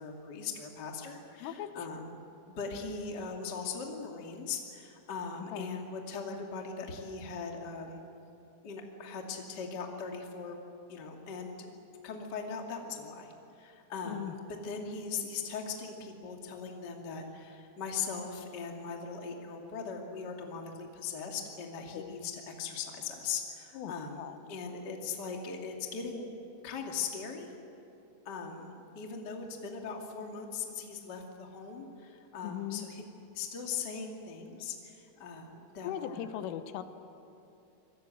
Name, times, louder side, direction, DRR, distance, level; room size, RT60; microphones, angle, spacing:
voice 1, 0.0-2.2 2.5-8.0 8.6-10.6 10.9-11.7 12.0-13.3 13.6-14.4 14.6-26.3 26.6-27.5 28.2-33.0 33.3-36.3, left 5 dB, 35° left, 1 dB, 1.8 m, -40 dB
voice 2, 14.0-14.4 21.9-22.1 23.7-24.4 32.4-32.9 35.8-36.8, left 11 dB, 85° left, 9 dB, 3.6 m, -39 dB
26.0 x 21.0 x 7.9 m, 2.9 s
omnidirectional pair, 5.6 m